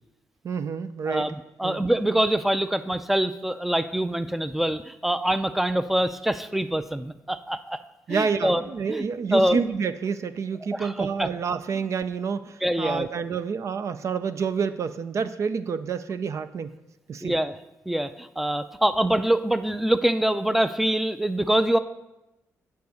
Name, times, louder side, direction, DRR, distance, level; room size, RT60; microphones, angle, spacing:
voice 1, 0.4-1.3 1.6-1.8 8.1-16.8 17.1-17.3, right 6 dB, 55° right, 12 dB, 0.5 m, -28 dB
voice 2, 1.1-7.8 8.1-8.6 8.9-9.0 9.3-9.6 10.7-11.3 12.6-13.1 17.2-17.5 17.9-21.8, right 1 dB, 5° right, 12 dB, 0.5 m, -24 dB
9.5 x 4.8 x 6.3 m, 0.95 s
cardioid pair, 90°, 6 cm